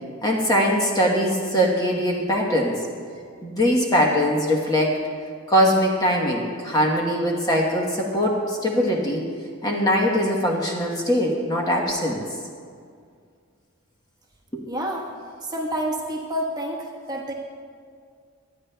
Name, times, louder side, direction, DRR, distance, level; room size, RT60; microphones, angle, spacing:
voice 1, 0.2-2.8 3.4-5.0 5.5-9.2 9.6-12.2 14.5-14.6, equal, 15° left, -1 dB, 1.0 m, -21 dB
voice 2, 14.7-15.1 15.5-17.3, right 1 dB, 20° right, -2 dB, 1.2 m, -28 dB
23.5 x 9.8 x 2.3 m, 2.2 s
head